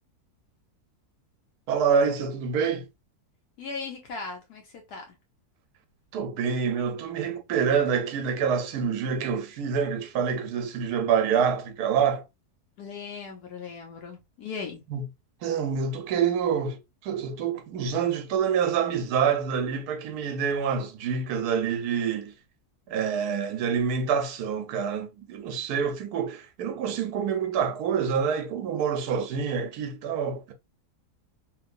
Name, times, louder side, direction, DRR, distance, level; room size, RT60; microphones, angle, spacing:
voice 1, 1.7-2.9 6.1-12.2 14.9-15.0 15.4-22.3 22.9-30.5, right 7 dB, 75° right, 1.2 m, -27 dB
voice 2, 3.6-5.1 12.8-14.8, left 5 dB, 80° left, 1.2 m, -38 dB
3.0 x 2.9 x 2.4 m
omnidirectional pair, 1.7 m